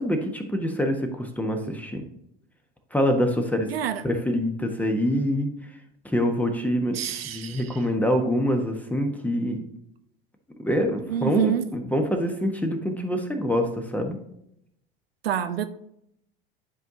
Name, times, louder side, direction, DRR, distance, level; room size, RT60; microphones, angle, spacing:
voice 1, 0.0-2.0 2.9-3.7 4.0-5.5 6.0-9.6 10.6-14.2, equal, 5° left, 1.2 m, -25 dB
voice 2, 3.7-4.0 6.9-7.8 11.1-11.6 15.2-15.6, right 10 dB, 80° right, 0.6 m, -27 dB
10.5 x 4.6 x 2.8 m
figure-of-eight pair, 75°, 30 cm